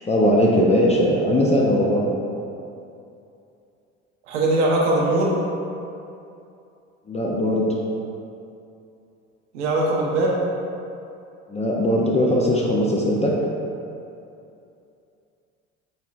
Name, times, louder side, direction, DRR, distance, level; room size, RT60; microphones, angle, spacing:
voice 1, 0.1-2.0 7.1-7.7 11.5-13.3, equal, 20° left, -3 dB, 0.5 m, -19 dB
voice 2, 4.3-5.4 9.5-10.4, right 2 dB, 85° right, -4 dB, 0.8 m, -20 dB
4.3 x 3.6 x 2.4 m, 2.7 s
hypercardioid pair, 75°, 35 cm